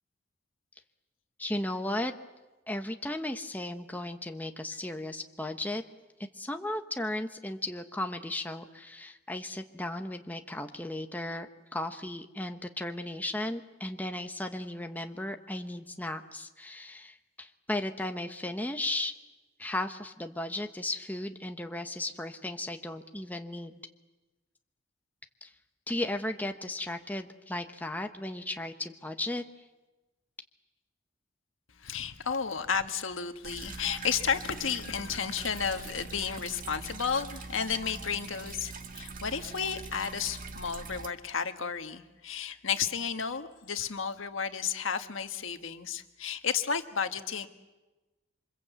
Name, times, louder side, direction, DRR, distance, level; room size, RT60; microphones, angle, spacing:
voice 1, 1.4-2.1 2.7-5.8 6.3-19.1 19.6-23.8 25.4-25.5 25.9-29.4, left 1 dB, 10° left, 5 dB, 1.1 m, -35 dB
voice 2, 31.8-47.5, left 6 dB, 85° left, 7 dB, 1.6 m, -32 dB
sound 1, 33.4-41.1, right 4 dB, 45° right, 1.6 m, -42 dB
28.0 x 25.0 x 8.2 m, 1.1 s
head